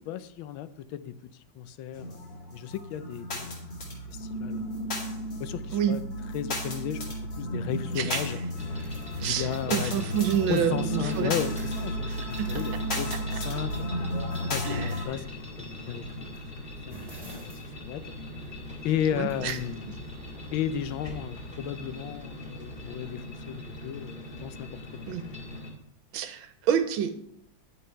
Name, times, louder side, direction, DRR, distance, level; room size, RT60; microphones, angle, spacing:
voice 1, 0.1-2.2 2.5-3.6 4.1-4.6 5.4-6.0 6.3-7.0 7.4-8.4 9.2-14.0 14.5-15.3 15.6-16.0 16.9-17.3 17.8-18.0 18.8-19.9 20.5-25.0, left 10 dB, 85° left, 13 dB, 1.4 m, -34 dB
sound 1, 1.9-15.0, equal, 65° left, 2.8 m, -33 dB
sound 2, 6.9-21.6, right 2 dB, 20° right, 2.0 m, -52 dB
sound 3, 8.5-25.7, left 1 dB, 25° left, 2.0 m, -41 dB
voice 2, 9.2-11.3 12.1-12.5 14.6-14.9 19.1-19.6 25.1-25.2 26.1-27.2, right 9 dB, 90° right, 10 dB, 1.6 m, -28 dB
9.9 x 6.6 x 4.5 m, 0.74 s
omnidirectional pair, 2.1 m